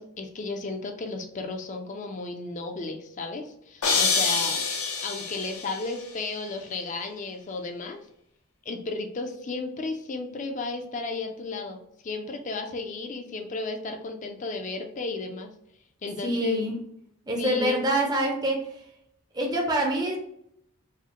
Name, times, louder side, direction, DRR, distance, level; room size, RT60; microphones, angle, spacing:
voice 1, 0.0-4.6 5.0-8.0 8.7-15.5 16.0-16.7 17.4-17.8, left 3 dB, 35° left, 4 dB, 0.4 m, -33 dB
sound 1, 3.8-5.9, left 4 dB, 85° left, 0.8 m, -26 dB
voice 2, 16.2-16.8 17.3-18.7 19.3-20.2, right 1 dB, 20° right, 0 dB, 0.5 m, -26 dB
4.7 x 2.1 x 2.9 m, 0.74 s
head